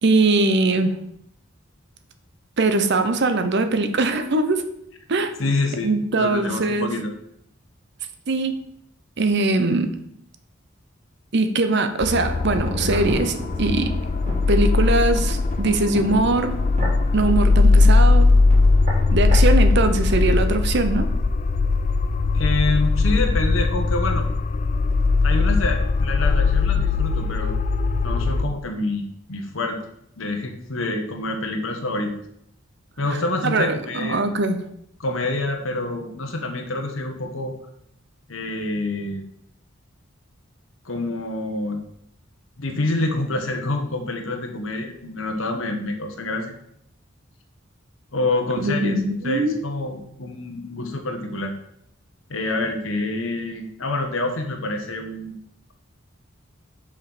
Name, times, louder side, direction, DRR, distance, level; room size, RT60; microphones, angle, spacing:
voice 1, 0.0-1.0 2.6-4.6 5.1-5.3 5.8-6.9 8.3-8.7 9.2-10.0 11.3-14.0 14.5-16.6 17.1-18.3 19.1-21.1 33.4-34.6 48.6-49.6, right 2 dB, 60° right, 9 dB, 0.8 m, -21 dB
voice 2, 5.4-7.1 22.3-24.3 25.2-27.5 28.0-29.8 30.2-32.2 33.0-34.2 35.0-37.5 38.3-39.2 40.8-41.8 42.6-46.5 48.1-49.0 49.2-51.5 52.3-55.3, left 2 dB, 85° left, 3 dB, 1.2 m, -27 dB
sound 1, 12.0-28.4, left 3 dB, 35° left, 0.3 m, -19 dB
sound 2, 12.1-21.1 21.4-21.5, equal, 40° right, 3.1 m, -35 dB
5.9 x 5.1 x 6.0 m, 0.73 s
head